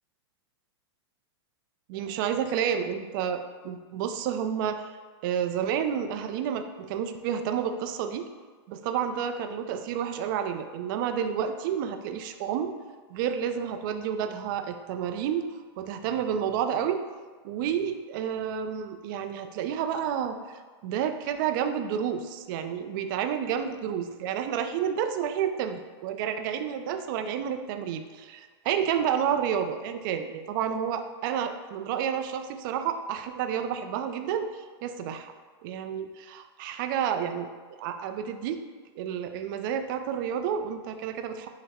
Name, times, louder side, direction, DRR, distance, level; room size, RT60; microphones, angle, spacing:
voice 1, 1.9-5.0 5.2-8.3 8.7-12.7 13.1-15.5 15.8-17.0 17.4-35.3 35.6-37.5 37.8-38.6 39.0-41.5, right 8 dB, 50° right, 8 dB, 0.4 m, -30 dB
5.8 x 2.1 x 4.1 m, 1.5 s
hypercardioid pair, 135°, 15 cm